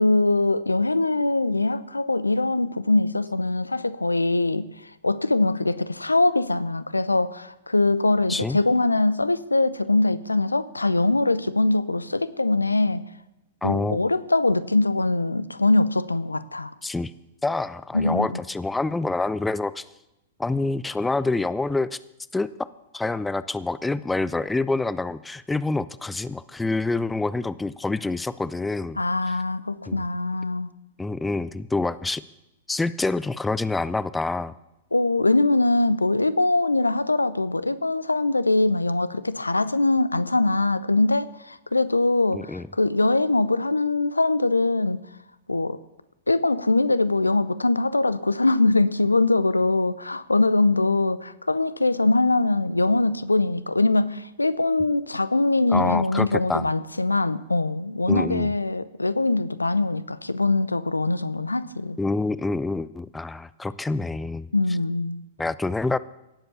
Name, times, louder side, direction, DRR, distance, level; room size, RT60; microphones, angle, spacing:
voice 1, 0.0-4.7 5.0-13.1 13.6-16.7 17.9-18.4 29.0-30.7 34.9-45.0 45.5-45.8 46.3-62.0 64.5-65.2, left 2 dB, 85° left, 15 dB, 0.7 m, -22 dB
voice 2, 13.6-14.0 16.8-17.1 17.4-19.8 20.4-21.9 22.3-22.5 22.9-29.0 29.9-30.0 31.0-32.2 32.7-34.5 42.3-42.7 55.7-56.7 58.1-58.5 62.0-64.5 65.4-66.0, left 3 dB, 10° left, 17 dB, 0.5 m, -26 dB
17.5 x 7.7 x 7.0 m, 0.93 s
figure-of-eight pair, 100°, 0 cm